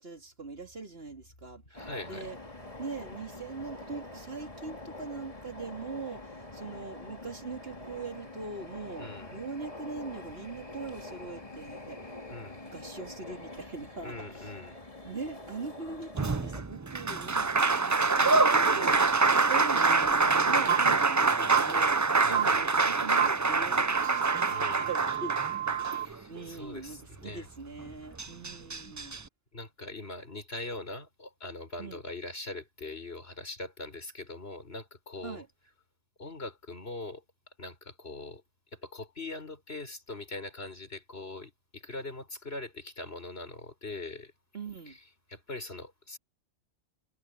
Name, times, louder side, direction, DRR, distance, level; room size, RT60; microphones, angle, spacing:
voice 1, 0.0-1.6 2.0-2.4 2.8-12.2 12.7-14.5 15.0-25.4 26.0-29.2 31.8-32.0 35.2-35.5 44.5-45.0, right 4 dB, 60° right, 3.2 m, -41 dB
voice 2, 1.7-2.3 9.0-9.4 12.3-12.6 14.0-14.8 22.2-22.7 24.5-24.9 26.0-27.5 29.5-35.4 36.2-37.2 37.6-38.4 38.7-44.3 44.9-45.0 45.3-46.2, left 2 dB, 60° left, 5.3 m, -42 dB
sound 1, 1.7-16.6, left 2 dB, 30° left, 2.8 m, -45 dB
Applause, 16.2-26.4 27.8-27.9 28.2-29.2, right 4 dB, 30° right, 0.3 m, -25 dB
sound 2, 20.7-20.8 21.5-21.6 22.3-22.4 23.2-23.3 23.9-26.1, right 11 dB, 80° right, 1.0 m, -31 dB
omnidirectional pair, 1.1 m